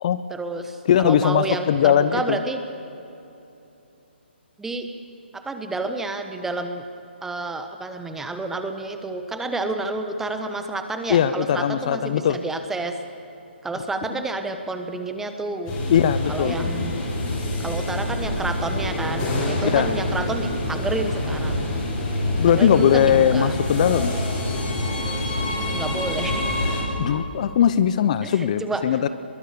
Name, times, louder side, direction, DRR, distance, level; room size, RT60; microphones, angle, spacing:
voice 1, 0.3-2.6 4.6-4.9 5.3-6.8 7.2-13.0 13.6-15.8 16.3-16.9 17.6-21.7 22.5-23.6 25.7-26.4 28.2-28.8, right 2 dB, 5° right, 7 dB, 1.1 m, -29 dB
voice 2, 0.9-2.4 11.1-12.4 15.9-16.6 19.7-20.0 22.3-24.2 27.0-29.1, left 9 dB, 40° left, 13 dB, 0.7 m, -20 dB
sound 1, 15.6-26.8, left 1 dB, 25° left, 6.4 m, -26 dB
23.5 x 22.5 x 6.8 m, 2.9 s
hypercardioid pair, 150°, 6 cm